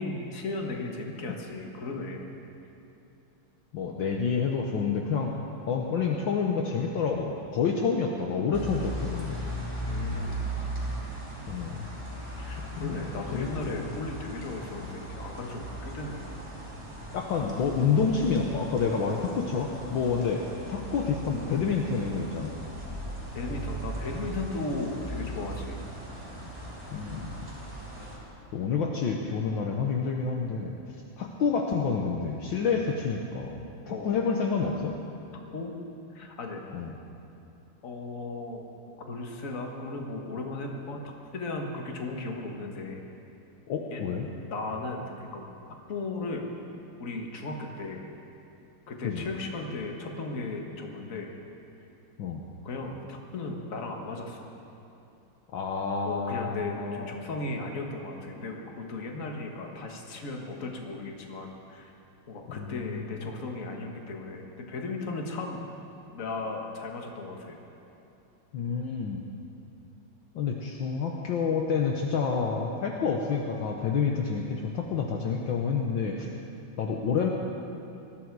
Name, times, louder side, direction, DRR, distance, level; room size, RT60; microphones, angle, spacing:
voice 1, 0.0-2.3 9.9-10.5 12.4-16.3 23.3-25.8 33.9-34.1 35.5-35.7 36.1-36.6 37.8-38.7 39.1-41.0 41.3-43.0 43.9-44.0 44.5-45.5 45.9-46.6 47.0-48.1 48.9-51.3 52.6-54.5 56.0-61.9 62.3-65.6 66.1-67.6, left 3 dB, 40° left, 1 dB, 1.7 m, -36 dB
voice 2, 3.7-5.3 5.7-9.4 11.5-11.9 12.6-13.8 17.1-20.4 20.7-22.5 26.9-27.3 28.5-30.8 31.2-33.5 33.9-34.9 36.7-36.9 43.7-44.3 49.0-49.2 52.2-52.4 55.5-57.2 62.5-63.2 68.5-69.2 70.3-76.3 76.8-77.3, left 5 dB, 65° left, 1 dB, 1.6 m, -28 dB
sound 1, 8.5-28.2, right 1 dB, 10° right, 3.1 m, -38 dB
20.0 x 13.5 x 4.7 m, 2.9 s
omnidirectional pair, 2.4 m